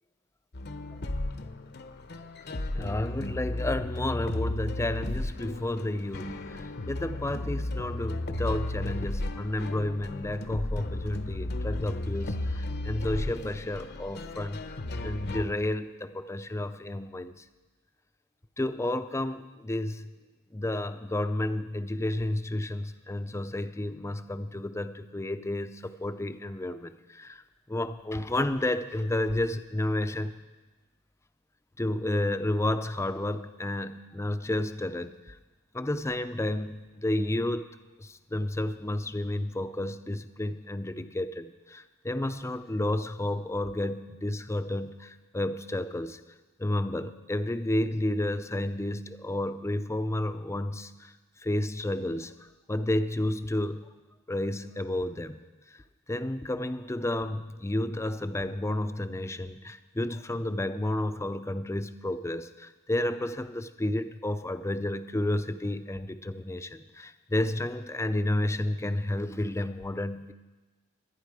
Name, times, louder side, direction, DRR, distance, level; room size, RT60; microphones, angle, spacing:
sound 1, 0.5-15.5, left 1 dB, 50° left, 0.8 m, -34 dB
voice 1, 2.7-14.6 15.0-17.3 18.6-20.1 20.5-27.4 27.7-30.3 31.8-35.4 35.7-37.7 38.0-46.2 46.6-51.1 51.4-52.3 52.7-53.8 54.3-55.4 56.1-70.3, left 1 dB, 15° left, 10 dB, 0.5 m, -31 dB
22.5 x 9.9 x 5.0 m, 1.2 s
head